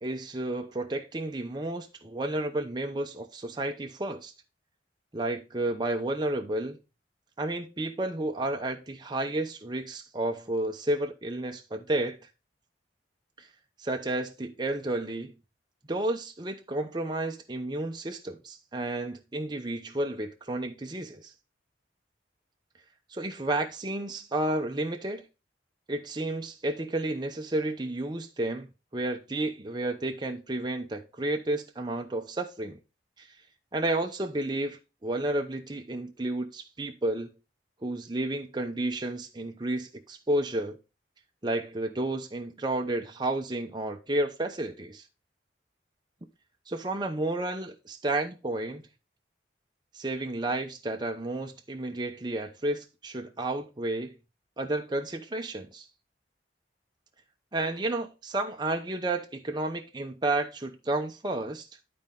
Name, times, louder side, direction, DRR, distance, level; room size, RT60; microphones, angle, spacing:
voice 1, 0.0-4.3 5.1-6.8 7.4-12.2 13.4-13.5 13.8-15.3 15.9-21.3 23.1-25.2 25.9-28.7 28.9-32.8 33.2-33.3 33.7-37.3 37.8-40.8 41.4-45.0 46.7-48.8 49.9-54.1 54.6-55.9 57.5-61.7, right 2 dB, 25° right, 0.7 m, -31 dB
11.0 x 4.3 x 3.7 m
head